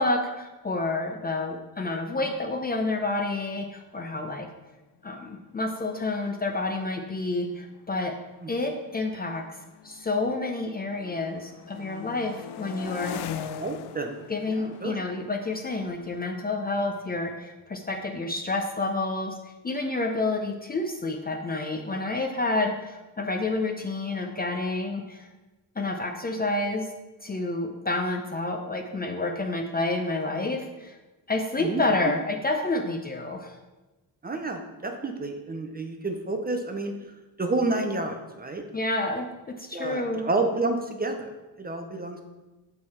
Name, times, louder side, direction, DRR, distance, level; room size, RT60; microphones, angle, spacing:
voice 1, 0.0-4.5 5.0-8.1 8.5-9.4 9.8-13.5 14.3-19.3 19.6-25.3 25.8-26.9 27.2-31.0 31.3-33.6 38.7-40.2, left 2 dB, 25° left, 3 dB, 0.5 m, -29 dB
sound 1, 5.1-5.2 5.5-5.8 6.6-10.5 10.8-17.5, left 8 dB, 75° left, 0.5 m, -42 dB
voice 2, 13.6-14.2 14.5-15.0 31.6-31.8 34.2-36.9 37.4-38.7 39.7-41.3 41.6-42.2, right 2 dB, 25° right, 5 dB, 0.6 m, -29 dB
7.6 x 4.8 x 4.2 m, 1.1 s
wide cardioid pair, 145°, 40 cm